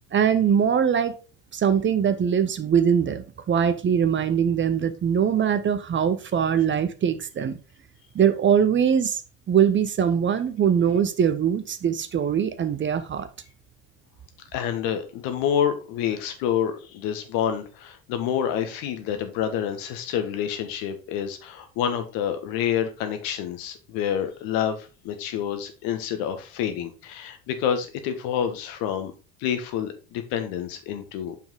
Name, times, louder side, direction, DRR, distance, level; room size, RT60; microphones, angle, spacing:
voice 1, 0.1-1.2 1.5-7.6 8.1-9.2 9.5-13.3, right 8 dB, 30° right, 0.9 m, -22 dB
voice 2, 14.5-29.1 29.4-31.3, left 9 dB, 60° left, 1.5 m, -28 dB
7.1 x 5.7 x 3.9 m
figure-of-eight pair, 60°, 39 cm